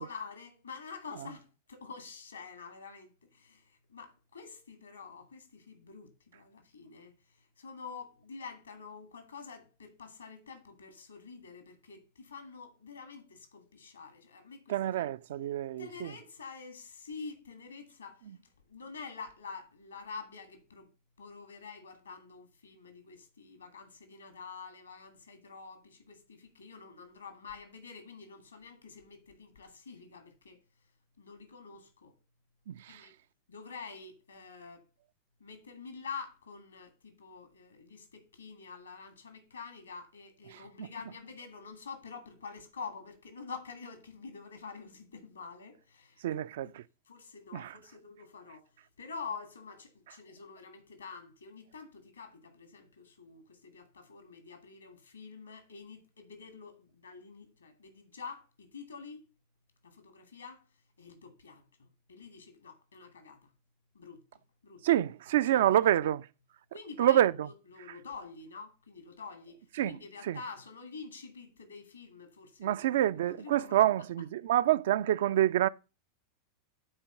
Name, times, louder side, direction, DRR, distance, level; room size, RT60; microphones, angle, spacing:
voice 1, 0.0-15.1 15.8-20.9 21.2-30.6 31.2-32.1 32.9-33.1 33.5-34.8 35.4-46.7 47.1-48.7 49.0-59.3 59.8-60.6 61.0-63.5 63.9-64.2 64.6-64.8 65.5-65.8 66.7-69.6 69.8-72.8 73.1-73.8, left 5 dB, 75° left, 2.3 m, -47 dB
voice 2, 14.7-16.1 18.3-18.4 32.7-33.1 40.5-40.9 46.2-46.8 47.5-47.7 64.8-66.3 67.0-67.5 69.8-70.4 72.6-75.7, right 12 dB, 55° right, 0.3 m, -27 dB
8.8 x 4.3 x 6.6 m
figure-of-eight pair, 90°, 0 cm